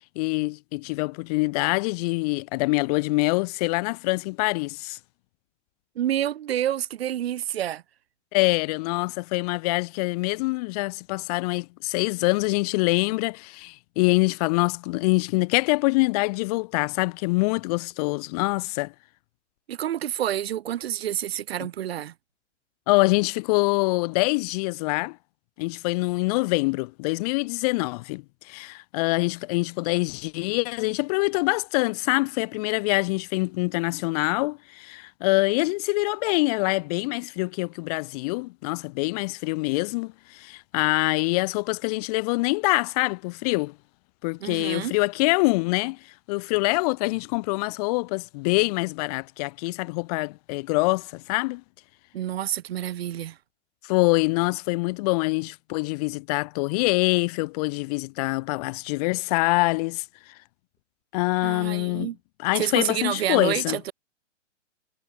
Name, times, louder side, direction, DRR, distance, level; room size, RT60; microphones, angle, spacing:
voice 1, 0.2-5.0 8.3-18.9 22.9-25.2 25.6-43.7 44.2-46.0 46.3-51.6 53.8-60.3 61.1-62.1 62.4-63.8, left 25 dB, 30° left, 1.2 m, -25 dB
voice 2, 6.0-7.8 19.7-22.1 44.4-44.9 52.1-53.4 61.4-62.2 62.6-63.9, right 11 dB, 55° right, 4.0 m, -28 dB
figure-of-eight pair, 125°, 37 cm